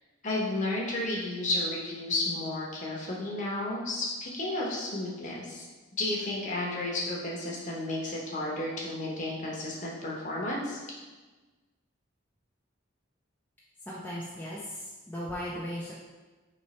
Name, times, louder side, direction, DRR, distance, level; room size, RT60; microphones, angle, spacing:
voice 1, 0.2-5.6 6.0-10.8, left 2 dB, 40° left, -4 dB, 0.9 m, -32 dB
voice 2, 13.9-15.9, equal, 10° left, -7 dB, 0.5 m, -37 dB
3.2 x 3.1 x 4.1 m, 1.2 s
head